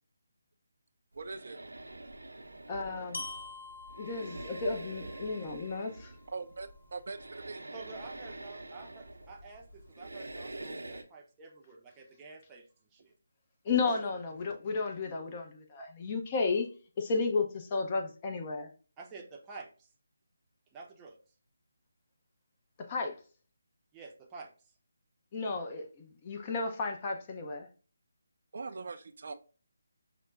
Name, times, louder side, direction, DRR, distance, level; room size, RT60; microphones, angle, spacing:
voice 1, 1.1-1.6 6.3-7.2 7.5-7.6 28.5-29.3, right 4 dB, 55° right, 0.3 m, -41 dB
sound 1, 1.1-11.0, right 2 dB, 85° right, 0.7 m, -46 dB
voice 2, 2.7-3.2 4.0-6.1 13.6-16.7 17.0-18.7 22.9-23.2 25.3-27.7, left 4 dB, 30° left, 0.6 m, -33 dB
Glockenspiel, 3.1-7.1, left 3 dB, 75° left, 0.4 m, -47 dB
voice 3, 7.7-12.7 12.9-13.1 13.7-14.0 19.0-19.9 20.7-21.2 23.9-24.5, right 4 dB, 15° right, 0.6 m, -49 dB
5.8 x 2.1 x 2.4 m
figure-of-eight pair, 155°, 0 cm